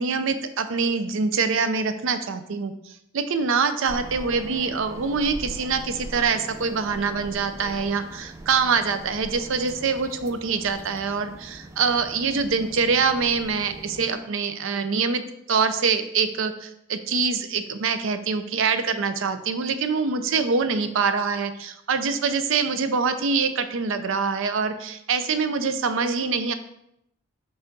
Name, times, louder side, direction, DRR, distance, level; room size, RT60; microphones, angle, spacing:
voice 1, 0.0-15.2 15.5-26.5, right 5 dB, 70° right, 10 dB, 0.5 m, -24 dB
sound 1, 3.9-14.1, right 1 dB, 15° right, 0.4 m, -41 dB
5.4 x 3.5 x 5.2 m, 0.79 s
head